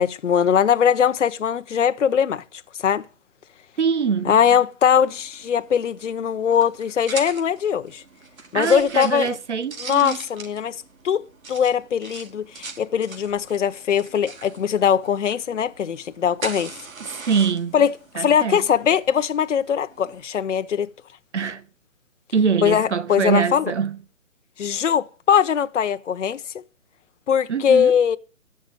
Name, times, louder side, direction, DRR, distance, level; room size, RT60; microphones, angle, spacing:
voice 1, 0.0-2.4 2.8-3.0 4.3-8.0 8.5-9.3 9.8-10.8 11.0-11.2 11.5-16.7 17.7-20.9 22.6-23.7 24.6-26.4 27.3-28.2, left 8 dB, 60° left, 0.8 m, -21 dB
voice 2, 3.8-4.4 8.5-10.2 17.0-17.7 18.1-18.6 21.3-21.6 22.3-24.0 27.5-27.9, right 6 dB, 55° right, 1.3 m, -24 dB
sound 1, 4.9-20.2, right 4 dB, 85° right, 3.9 m, -41 dB
11.0 x 6.7 x 9.1 m
hypercardioid pair, 180°, 40 cm